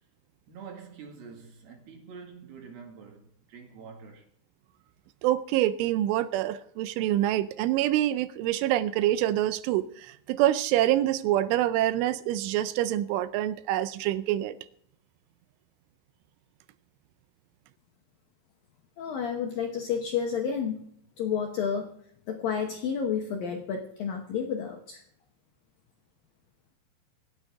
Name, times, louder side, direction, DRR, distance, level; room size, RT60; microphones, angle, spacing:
voice 1, 0.5-4.3, right 5 dB, 60° right, 3.4 m, -46 dB
voice 2, 5.2-14.6, right 13 dB, 85° right, 3.1 m, -26 dB
voice 3, 19.0-20.9 21.2-21.9 22.3-25.0, left 7 dB, 75° left, 2.1 m, -30 dB
25.5 x 9.0 x 3.6 m
omnidirectional pair, 5.6 m